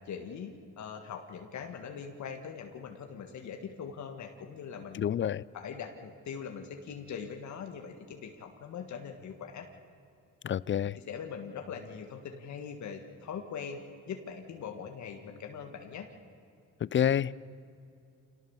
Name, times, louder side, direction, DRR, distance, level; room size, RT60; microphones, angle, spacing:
voice 1, 0.1-5.1 5.5-9.7 10.9-13.8 14.1-16.1, left 6 dB, 70° left, 4 dB, 1.8 m, -42 dB
voice 2, 4.9-5.4 10.4-11.0 16.8-17.4, left 9 dB, 40° left, 22 dB, 0.5 m, -28 dB
26.0 x 18.5 x 7.2 m, 2.6 s
cardioid pair, 90°, 30 cm